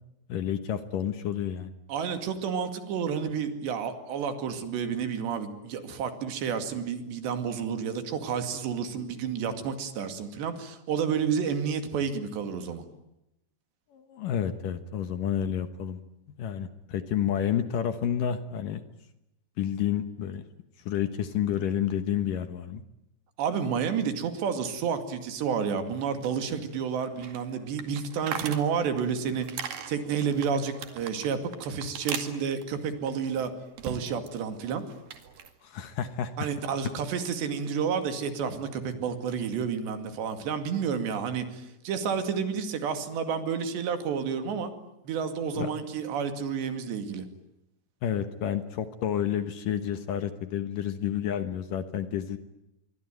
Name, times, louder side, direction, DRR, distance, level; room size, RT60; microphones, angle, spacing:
voice 1, 0.3-1.7 13.9-16.0 16.3-18.8 19.6-20.4 20.9-22.8 35.6-36.5 45.6-45.7 48.0-52.4, left 9 dB, 65° left, 11 dB, 2.5 m, -30 dB
voice 2, 1.9-12.9 23.4-33.5 33.8-34.8 36.4-44.7 45.0-47.3, right 6 dB, 85° right, 9 dB, 4.7 m, -30 dB
sound 1, 25.9-34.4 34.7-35.5, right 7 dB, 60° right, 3.8 m, -41 dB
27.0 x 23.5 x 9.3 m, 0.88 s
omnidirectional pair, 4.9 m